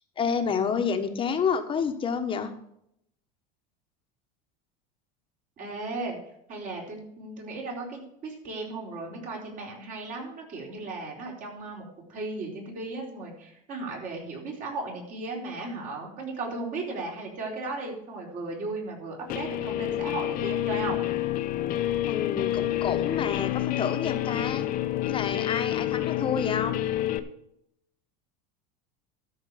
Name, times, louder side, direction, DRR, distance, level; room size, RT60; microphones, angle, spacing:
voice 1, 0.2-2.5 22.1-24.7 25.1-26.8, left 6 dB, 25° left, 7 dB, 1.3 m, -29 dB
voice 2, 5.6-6.2 6.5-11.8 12.1-21.0, right 3 dB, 40° right, -1 dB, 4.4 m, -36 dB
Guitar, 19.3-27.2, left 13 dB, 45° left, 0.9 m, -28 dB
13.0 x 5.1 x 8.2 m, 0.75 s
supercardioid pair, 135°, 20 cm